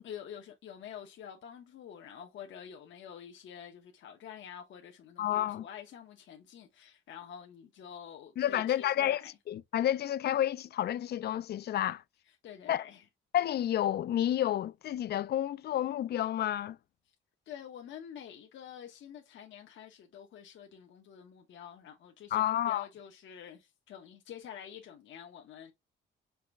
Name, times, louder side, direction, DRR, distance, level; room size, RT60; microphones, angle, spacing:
voice 1, 0.0-9.3 12.3-13.0 17.5-25.7, left 8 dB, 70° left, 1.0 m, -48 dB
voice 2, 5.2-5.7 8.4-9.2 9.5-12.0 12.7-12.8 13.3-16.8 22.3-22.8, left 11 dB, 55° left, 0.4 m, -30 dB
5.7 x 2.2 x 3.3 m
cardioid pair, 90°, 20 cm